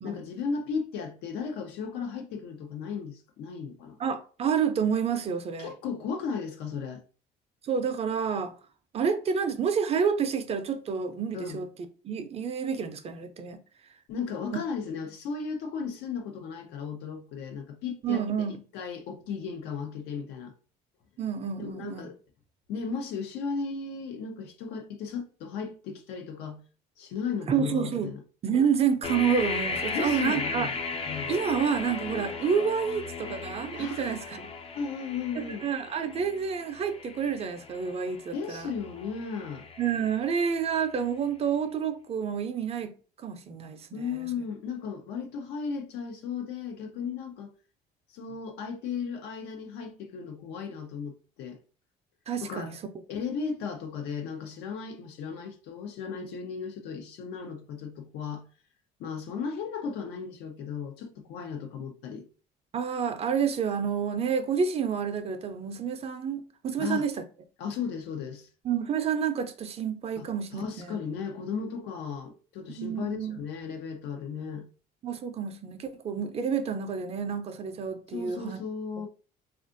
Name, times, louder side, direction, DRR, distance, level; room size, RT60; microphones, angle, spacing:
voice 1, 0.0-4.0 5.6-7.0 11.3-11.6 14.1-18.5 18.7-20.5 21.6-22.2 22.7-26.6 27.0-28.2 29.9-30.8 31.1-31.3 33.7-34.1 34.7-35.7 38.3-39.7 43.9-47.5 48.1-51.6 52.4-52.7 53.1-58.4 59.0-62.2 66.8-67.1 67.6-68.5 70.2-74.7 78.1-79.1, left 6 dB, 80° left, 0.6 m, -35 dB
voice 2, 4.0-5.7 7.6-8.5 8.9-11.7 12.0-13.6 18.0-18.6 21.2-22.1 27.5-28.1 28.4-30.7 31.3-34.5 35.4-38.7 39.8-42.9 43.2-43.9 52.3-52.8 62.7-67.1 68.6-71.0 72.7-73.4 75.0-78.6, right 7 dB, 40° right, 0.5 m, -29 dB
sound 1, 29.0-40.8, left 4 dB, 35° left, 0.5 m, -36 dB
3.4 x 2.4 x 2.5 m
cardioid pair, 105°, 17 cm